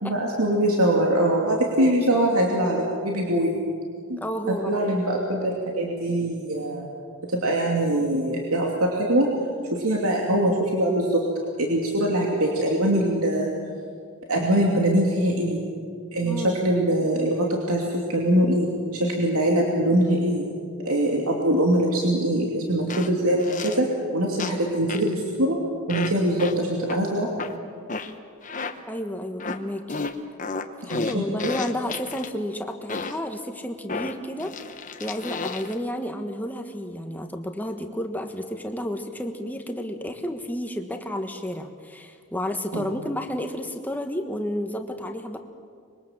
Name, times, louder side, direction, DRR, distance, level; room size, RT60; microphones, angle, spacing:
voice 1, 0.0-3.6 4.1-4.2 4.5-6.9 7.3-9.3 9.7-11.2 11.6-13.5 14.3-15.6 16.1-20.4 20.8-25.6 25.9-27.3 30.9-31.5 42.7-42.9, right 1 dB, 75° right, -1 dB, 2.8 m, -23 dB
voice 2, 1.8-2.2 4.2-4.8 16.2-16.6 28.9-30.0 30.8-34.5 35.0-45.4, equal, 10° left, 5 dB, 1.4 m, -31 dB
sound 1, 22.9-23.1 23.4-23.8 24.4-24.6 24.9-25.1 25.9-26.1 26.4-26.5 26.9-27.0 27.4-27.5 27.9-28.1 28.4-28.7 29.4-29.6 29.9-32.3 32.9-33.2 33.9-35.7, left 4 dB, 35° left, 1.1 m, -32 dB
26.0 x 22.5 x 7.4 m, 2.2 s
head